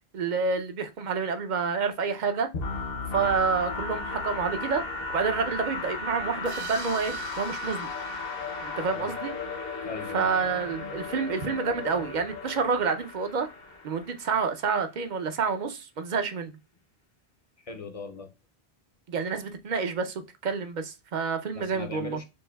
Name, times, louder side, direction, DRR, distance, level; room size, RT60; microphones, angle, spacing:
voice 1, 0.1-2.5 3.1-4.8 5.1-7.9 8.6-9.3 10.1-13.5 13.8-16.6 19.1-22.2, right 5 dB, 50° right, 0.7 m, -28 dB
sound 1, 2.5-14.3, left 4 dB, 65° left, 0.9 m, -35 dB
sound 2, 6.5-9.8, right 8 dB, 80° right, 0.9 m, -46 dB
voice 2, 9.8-10.3 17.6-18.3 21.5-22.3, left 4 dB, 40° left, 0.6 m, -40 dB
6.2 x 2.7 x 2.2 m
omnidirectional pair, 1.1 m